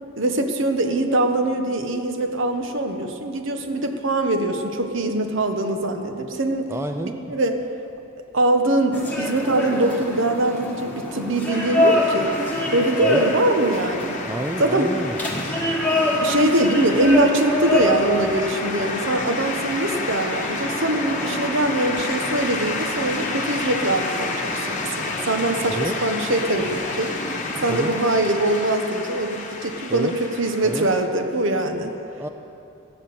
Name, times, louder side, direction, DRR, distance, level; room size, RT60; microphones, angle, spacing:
voice 1, 0.2-6.7 7.3-7.6 8.3-12.3 12.7-14.2 14.6-14.9 16.2-27.1 27.6-31.9, right 1 dB, 60° right, 5 dB, 1.1 m, -22 dB
voice 2, 6.7-7.2 13.0-13.3 14.2-15.2 25.7-26.0 27.7-27.9 29.9-30.1 30.6-30.9 32.2-32.3, right 1 dB, 10° right, 5 dB, 0.4 m, -28 dB
sound 1, 8.9-28.0, left 1 dB, 10° left, 1.6 m, -27 dB
sound 2, 11.5-31.1, left 3 dB, 35° left, 1.1 m, -31 dB
14.0 x 9.9 x 6.8 m, 2.8 s
head